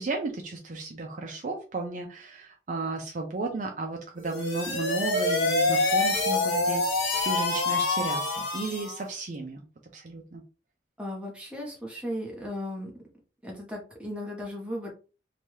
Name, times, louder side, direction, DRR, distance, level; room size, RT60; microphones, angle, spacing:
voice 1, 0.0-9.6 9.9-10.4, right 3 dB, 45° right, 2 dB, 0.4 m, -34 dB
sound 1, 4.2-9.0, left 2 dB, 90° left, 1.0 m, -26 dB
voice 2, 11.0-12.9 13.4-14.9, equal, 5° right, -2 dB, 0.8 m, -36 dB
2.7 x 2.2 x 3.1 m, 0.34 s
head